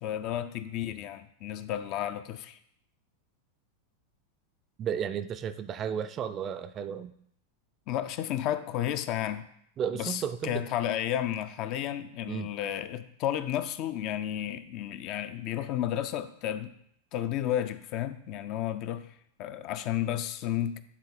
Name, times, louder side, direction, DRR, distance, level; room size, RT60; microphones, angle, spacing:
voice 1, 0.0-2.6 7.9-9.5 9.9-16.7 17.1-20.8, left 11 dB, 40° left, 11 dB, 0.5 m, -32 dB
voice 2, 4.8-7.1 9.8-10.6 12.3-12.5, right 8 dB, 30° right, 10 dB, 0.4 m, -33 dB
9.8 x 3.9 x 4.1 m, 0.70 s
figure-of-eight pair, 90°, 0 cm